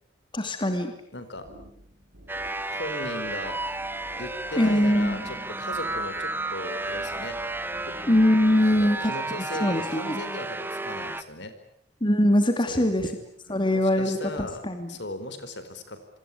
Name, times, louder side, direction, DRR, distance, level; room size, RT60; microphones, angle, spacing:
voice 1, 0.3-0.9 4.6-5.2 8.1-9.1 9.6-10.2 12.0-13.1 13.5-14.9, left 1 dB, 25° left, 7 dB, 2.7 m, -22 dB
voice 2, 1.1-1.5 2.7-3.6 4.2-7.4 8.6-11.5 12.7-13.1 13.5-16.0, left 2 dB, 65° left, 10 dB, 4.6 m, -37 dB
sound 1, 1.4-9.1, equal, 65° right, 7.3 m, -50 dB
sound 2, 2.3-11.2, right 2 dB, 10° right, 1.3 m, -32 dB
27.5 x 24.5 x 8.6 m, 0.66 s
head